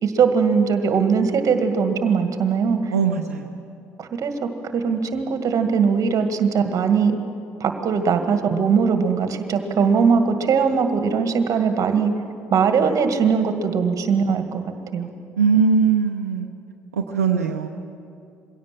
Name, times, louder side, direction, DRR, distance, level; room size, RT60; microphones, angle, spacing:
voice 1, 0.0-2.9 4.0-4.3 4.7-7.2 7.6-12.1 12.5-14.6 14.9-15.1, right 6 dB, 45° right, 7 dB, 1.9 m, -20 dB
voice 2, 2.9-3.6 15.4-16.5 16.9-17.7, right 5 dB, 85° right, 4 dB, 0.7 m, -20 dB
22.5 x 17.0 x 7.5 m, 2.5 s
figure-of-eight pair, 55°, 8 cm